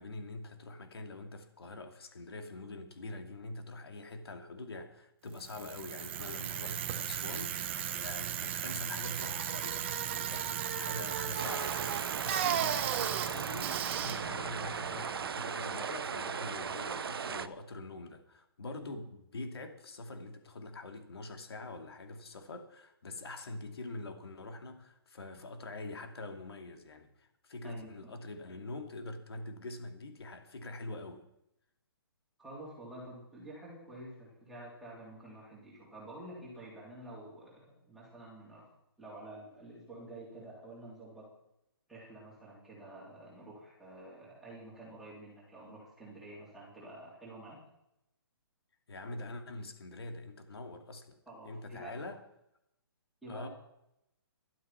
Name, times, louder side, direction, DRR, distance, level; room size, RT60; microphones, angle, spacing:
voice 1, 0.0-31.2 48.9-51.2 51.4-52.2 53.3-53.5, left 2 dB, 80° left, 6 dB, 2.6 m, -44 dB
Bicycle, 5.4-15.4, right 10 dB, 30° right, 1.1 m, -36 dB
sound 1, 11.4-17.5, right 6 dB, 70° right, 0.8 m, -37 dB
voice 2, 32.4-38.6 39.0-41.3 41.9-47.6 51.3-51.9 53.2-53.5, right 1 dB, ahead, -6 dB, 3.6 m, -49 dB
12.5 x 12.0 x 5.9 m, 0.81 s
hypercardioid pair, 170°, 13 cm